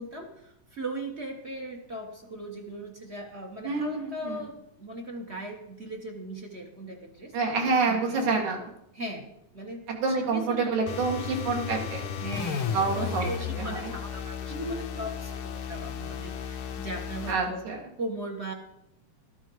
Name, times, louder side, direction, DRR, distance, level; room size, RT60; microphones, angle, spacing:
voice 1, 0.0-8.4 8.9-10.8 12.1-18.5, right 1 dB, 45° right, 2 dB, 0.8 m, -39 dB
voice 2, 3.6-4.4 7.3-8.6 9.9-12.1 12.7-13.2 13.6-13.9 14.5-15.0 17.3-17.8, right 4 dB, 75° right, 0 dB, 3.5 m, -28 dB
sound 1, 10.9-17.4, left 7 dB, 75° left, 2.3 m, -34 dB
12.5 x 12.0 x 4.7 m, 0.80 s
omnidirectional pair, 3.4 m